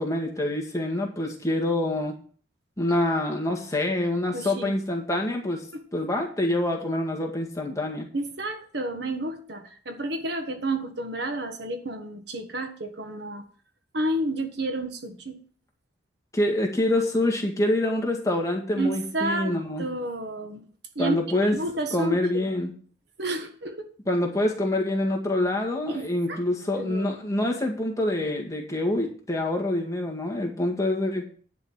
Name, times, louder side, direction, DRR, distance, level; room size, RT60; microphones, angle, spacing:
voice 1, 0.0-2.2 2.8-5.7 5.9-8.1 16.3-19.9 21.0-21.6 21.9-22.7 24.1-31.3, left 1 dB, 15° left, 1 dB, 1.9 m, -26 dB
voice 2, 4.3-4.7 5.7-5.8 8.1-13.4 13.9-15.4 18.8-20.6 20.9-22.4 23.2-23.9 25.9-26.4 26.8-27.2, right 1 dB, 60° right, 6 dB, 1.5 m, -31 dB
10.5 x 5.1 x 7.4 m, 0.43 s
head